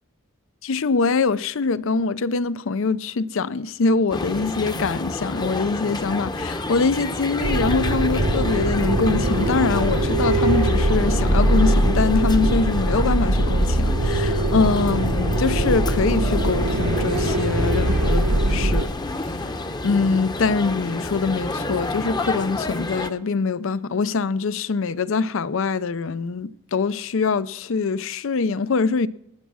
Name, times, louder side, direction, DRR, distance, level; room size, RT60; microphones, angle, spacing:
voice 1, 0.6-18.9 19.8-29.1, left 4 dB, 65° left, 0.5 m, -23 dB
sound 1, 4.1-23.1, left 2 dB, 20° left, 0.8 m, -29 dB
sound 2, 7.4-18.8, right 1 dB, 85° right, 1.2 m, -21 dB
19.5 x 8.3 x 6.2 m
head